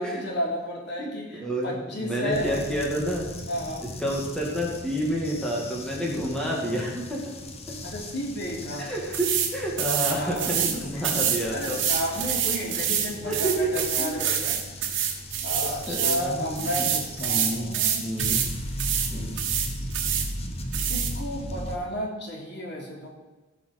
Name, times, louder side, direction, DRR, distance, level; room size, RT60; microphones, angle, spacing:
voice 1, 0.0-2.6 3.5-3.8 7.8-8.9 10.1-10.5 10.9-15.0 15.4-18.1 20.9-23.1, equal, 60° left, -2 dB, 3.4 m, -33 dB
voice 2, 1.0-3.3 4.0-7.3 8.8-11.8 13.2-14.1 15.9-17.7 18.0-18.4 19.1-19.4, right 1 dB, 5° left, -3 dB, 2.3 m, -29 dB
sound 1, 2.3-21.8, left 1 dB, 30° left, 1.2 m, -37 dB
sound 2, 9.1-9.5 9.8-10.7 11.0-16.2 16.5-18.5 18.8-19.1 19.4-20.3 20.7-21.1, right 9 dB, 65° right, 2.1 m, -26 dB
16.5 x 6.3 x 6.1 m, 1.2 s
head